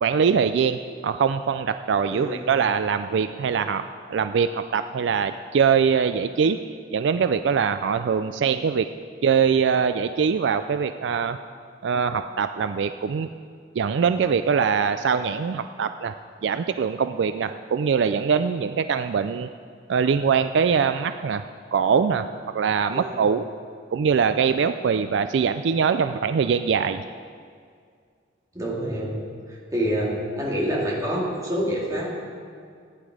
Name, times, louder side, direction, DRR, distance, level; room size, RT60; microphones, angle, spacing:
voice 1, 0.0-3.8 4.1-8.9 9.2-11.4 11.8-13.3 13.8-16.1 16.4-19.5 19.9-21.4 21.7-22.3 22.5-23.4 23.9-27.0, right 6 dB, 70° right, 10 dB, 0.4 m, -23 dB
voice 2, 2.1-2.5 22.9-23.2 28.5-29.1 29.5-32.2, equal, 20° right, -4 dB, 2.5 m, -27 dB
15.0 x 9.9 x 4.9 m, 2.1 s
head